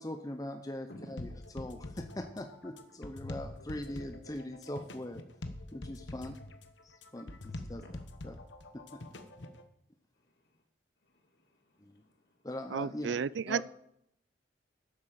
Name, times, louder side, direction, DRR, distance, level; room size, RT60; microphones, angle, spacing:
voice 1, 0.0-1.3 1.5-5.2 5.7-6.4 6.8-7.8 8.2-8.4 8.7-9.0 11.8-12.0 12.4-13.2 13.5-13.6, left 1 dB, 20° left, 6 dB, 0.7 m, -41 dB
voice 2, 0.9-1.8 7.4-7.9 10.1-10.6 11.0-12.4, left 1 dB, 60° left, 2 dB, 2.7 m, -56 dB
sound 1, 1.2-9.6, left 1 dB, 80° left, 1.2 m, -45 dB
voice 3, 12.7-13.6, right 6 dB, 75° right, 20 dB, 0.4 m, -32 dB
11.5 x 8.3 x 7.6 m, 0.74 s
head